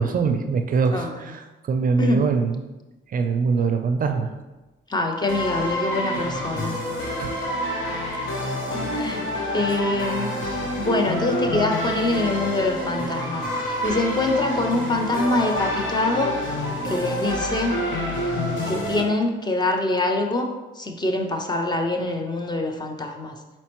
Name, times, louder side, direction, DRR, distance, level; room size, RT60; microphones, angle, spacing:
voice 1, 0.0-2.7 3.1-4.3 7.2-7.3 9.7-9.8, right 5 dB, 45° right, 6 dB, 0.4 m, -23 dB
voice 2, 4.9-6.8 8.7-9.2 9.5-10.3 10.8-16.3 16.8-17.8 18.7-20.5 20.8-23.4, left 2 dB, 20° left, 3 dB, 0.6 m, -24 dB
sound 1, 5.3-19.0, left 1 dB, 75° left, 1.1 m, -27 dB
4.3 x 4.2 x 3.0 m, 1.1 s
cardioid pair, 90°, 20 cm